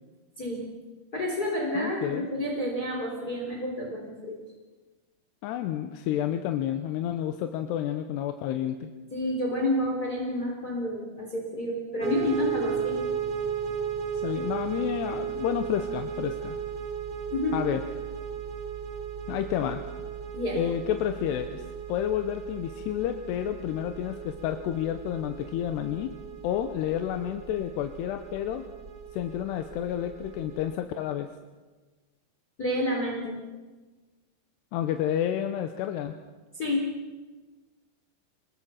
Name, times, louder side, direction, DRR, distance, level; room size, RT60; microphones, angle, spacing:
voice 1, 1.1-4.4 9.1-13.0 17.3-17.6 20.3-20.6 32.6-33.4 36.6-36.9, left 1 dB, 25° left, -1 dB, 3.7 m, -29 dB
voice 2, 1.7-2.3 5.4-8.9 14.2-16.6 17.5-17.8 19.3-19.8 20.5-21.6 21.9-26.1 26.4-28.7 29.1-31.3 34.7-36.2, left 11 dB, 90° left, 7 dB, 3.0 m, -30 dB
sound 1, 12.0-30.7, right 7 dB, 35° right, 1.6 m, -35 dB
26.5 x 21.5 x 5.8 m, 1.3 s
omnidirectional pair, 4.7 m